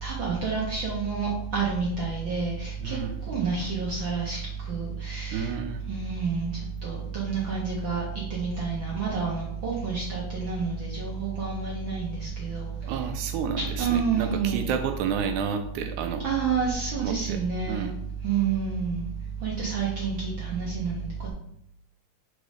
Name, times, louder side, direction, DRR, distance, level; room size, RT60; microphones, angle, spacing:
voice 1, 0.0-3.0 3.3-4.4 4.7-5.5 5.9-8.0 8.3-12.7 13.6-14.7 16.2-17.9 18.2-19.1 19.4-21.3, right 5 dB, 65° right, -4 dB, 1.2 m, -29 dB
voice 2, 2.8-3.2 5.3-5.8 12.8-16.2 17.0-17.4 17.7-17.9, right 6 dB, 80° right, 6 dB, 1.9 m, -30 dB
5.4 x 3.9 x 4.9 m, 0.74 s
omnidirectional pair, 3.5 m